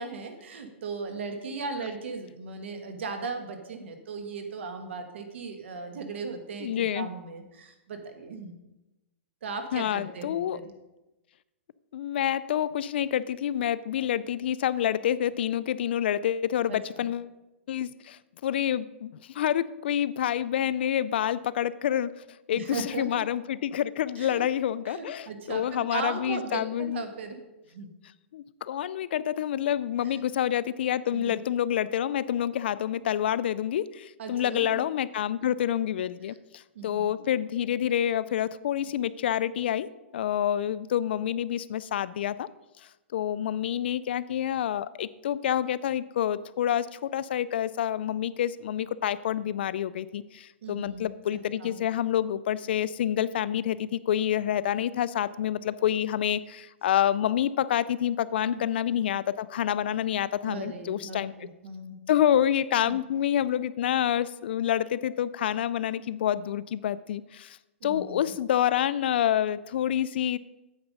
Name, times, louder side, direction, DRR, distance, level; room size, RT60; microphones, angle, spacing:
voice 1, 0.0-8.5 9.4-10.7 16.7-17.1 22.5-23.2 24.2-24.4 24.9-27.4 27.7-27.9 30.0-30.1 31.1-31.4 34.2-34.8 36.7-37.1 50.6-51.1 51.6-51.8 58.5-58.7 60.4-62.0 62.9-63.0 67.8-68.2, right 4 dB, 65° right, 6 dB, 1.7 m, -37 dB
voice 2, 6.6-7.1 9.7-10.6 11.9-17.3 17.7-22.1 22.5-27.0 28.3-39.9 40.1-42.5 43.1-61.3 62.1-67.6 67.8-70.4, left 10 dB, 55° left, 17 dB, 0.4 m, -28 dB
8.9 x 7.1 x 5.3 m, 1.0 s
hypercardioid pair, 170°, 7 cm